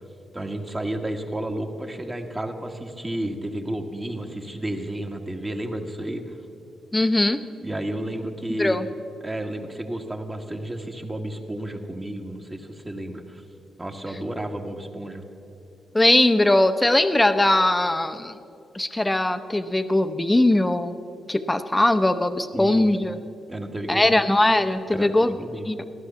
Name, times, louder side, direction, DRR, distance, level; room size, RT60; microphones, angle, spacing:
voice 1, 0.3-6.4 7.6-8.9 9.2-13.4 13.8-15.2 22.5-23.1 23.5-24.2 24.9-25.7, right 1 dB, 20° right, 3 dB, 1.6 m, -32 dB
voice 2, 6.9-7.4 8.6-8.9 15.9-18.4 18.7-21.0 21.3-23.2 23.9-25.3 25.7-25.8, left 1 dB, 15° left, 10 dB, 0.8 m, -20 dB
15.0 x 11.5 x 7.0 m, 2.7 s
cardioid pair, 70°, 0 cm